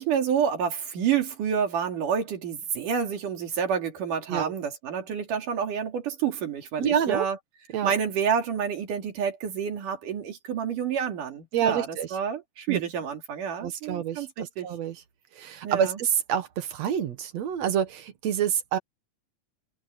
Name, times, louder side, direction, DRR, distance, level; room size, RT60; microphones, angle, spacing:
voice 1, 0.0-7.4 7.8-14.7 15.6-16.0, right 7 dB, 85° right, 4.2 m, -28 dB
voice 2, 6.8-7.3 7.7-7.9 11.5-12.1 12.7-12.8 13.6-14.3 14.6-15.0 15.4-18.8, right 9 dB, 60° right, 2.5 m, -27 dB
omnidirectional pair, 3.6 m